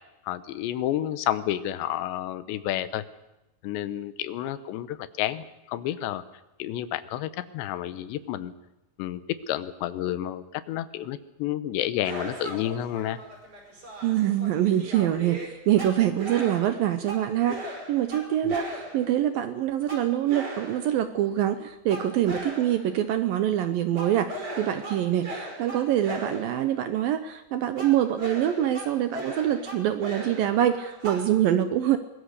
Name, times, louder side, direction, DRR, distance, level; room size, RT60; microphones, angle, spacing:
voice 1, 0.3-3.0 3.6-6.2 6.6-8.5 9.0-13.2 18.4-18.6, left 12 dB, 85° left, 14 dB, 3.2 m, -30 dB
sound 1, 12.0-19.2 19.9-21.1 21.9-23.0 23.9-26.7 27.8-31.3, right 1 dB, 35° right, 6.2 m, -38 dB
voice 2, 14.0-15.4 15.7-32.0, right 11 dB, 75° right, 10 dB, 2.3 m, -25 dB
24.0 x 21.5 x 6.6 m, 0.95 s
omnidirectional pair, 5.0 m